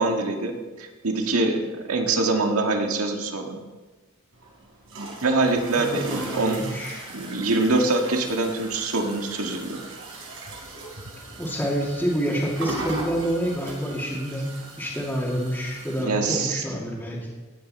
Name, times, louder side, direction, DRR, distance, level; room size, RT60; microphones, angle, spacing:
voice 1, 0.0-3.6 5.2-9.8 16.0-16.6, right 2 dB, 85° right, 3 dB, 1.8 m, -24 dB
sound 1, 4.3-16.0, right 2 dB, 65° right, 4.4 m, -39 dB
voice 2, 5.8-7.0 11.4-17.2, equal, 10° left, -6 dB, 2.3 m, -28 dB
16.5 x 9.9 x 4.3 m, 1.2 s
head